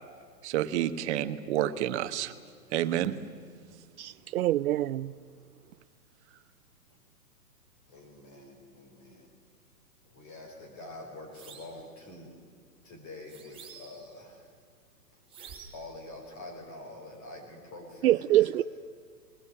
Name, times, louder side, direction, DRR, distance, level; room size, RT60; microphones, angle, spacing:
voice 1, 0.4-2.3 2.7-3.2, right 12 dB, 45° right, 1.3 m, -29 dB
voice 2, 4.0-5.1 18.0-18.6, right 14 dB, 60° right, 0.6 m, -25 dB
voice 3, 7.9-9.3 10.0-12.4 12.8-14.5 15.1-15.2 15.7-18.6, left 2 dB, 35° left, 5.5 m, -46 dB
sound 1, 11.3-11.8 13.3-14.1 15.3-15.9, right 6 dB, 10° right, 3.7 m, -49 dB
21.0 x 20.5 x 9.6 m
hypercardioid pair, 150°, 49 cm